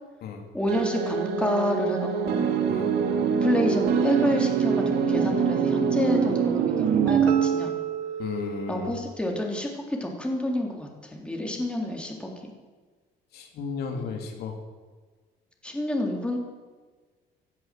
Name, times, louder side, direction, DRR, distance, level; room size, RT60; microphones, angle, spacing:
voice 1, 0.5-2.5 3.4-7.7 8.7-12.5 13.9-14.1 15.6-16.4, left 1 dB, 5° left, 1 dB, 3.5 m, -29 dB
sound 1, 0.7-9.1, right 7 dB, 75° right, 1.9 m, -25 dB
voice 2, 8.2-8.9 13.3-14.6, left 5 dB, 70° left, 3 dB, 2.9 m, -33 dB
17.0 x 11.0 x 7.8 m, 1.4 s
cardioid pair, 110°, 17 cm